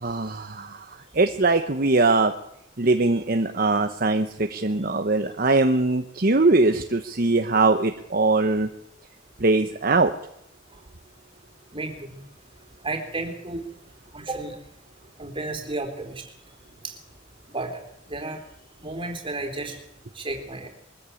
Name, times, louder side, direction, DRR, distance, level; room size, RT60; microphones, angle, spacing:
voice 1, 0.0-2.3 2.8-8.7 9.4-10.1, right 3 dB, 50° right, 7 dB, 1.0 m, -21 dB
voice 2, 11.7-12.2 12.8-13.7 14.1-14.6 15.2-16.3 16.8-17.0 17.5-18.4 18.8-19.8 20.1-20.7, right 2 dB, 25° right, 3 dB, 3.7 m, -32 dB
22.5 x 14.0 x 8.5 m, 0.77 s
head